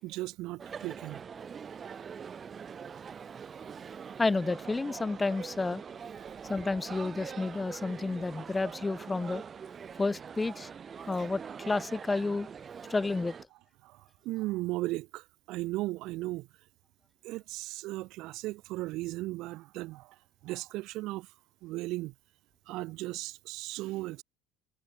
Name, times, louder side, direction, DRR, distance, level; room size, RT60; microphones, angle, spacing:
voice 1, 0.0-1.2 6.2-6.3 13.8-14.0 14.2-16.5 17.2-20.1 20.4-21.3 21.6-22.1 22.7-24.2, right 19 dB, 70° right, 6.6 m, -36 dB
sound 1, 0.6-13.4, right 6 dB, 30° right, 7.9 m, -43 dB
voice 2, 4.2-5.8 6.5-9.4 10.0-10.7 11.1-12.5 12.9-13.3, left 3 dB, 15° left, 5.1 m, -30 dB
supercardioid pair, 110°, 0 cm